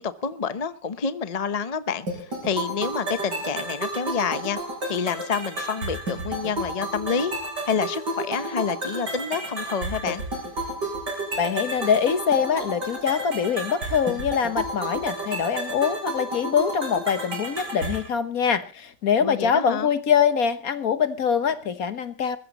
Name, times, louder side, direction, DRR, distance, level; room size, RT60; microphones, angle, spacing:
voice 1, 0.0-4.6 4.9-7.4 7.6-10.2 19.2-19.9, left 6 dB, 30° left, 12 dB, 0.7 m, -28 dB
sound 1, 2.1-18.1, right 1 dB, 80° right, 7.0 m, -31 dB
voice 2, 11.4-22.4, left 7 dB, 60° left, 11 dB, 1.6 m, -24 dB
21.5 x 15.0 x 3.0 m, 0.32 s
omnidirectional pair, 1.8 m